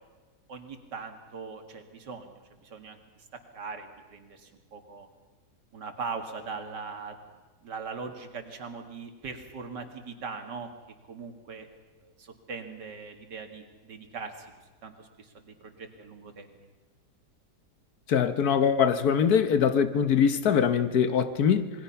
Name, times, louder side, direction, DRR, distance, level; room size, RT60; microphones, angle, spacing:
voice 1, 0.5-5.1 5.7-7.2 7.6-10.7 11.1-11.7 12.0-14.5 14.8-16.7, right 4 dB, 85° right, 5 dB, 2.6 m, -41 dB
voice 2, 18.1-21.7, left 7 dB, 65° left, 11 dB, 1.5 m, -23 dB
27.0 x 21.0 x 5.8 m, 1.3 s
omnidirectional pair, 1.8 m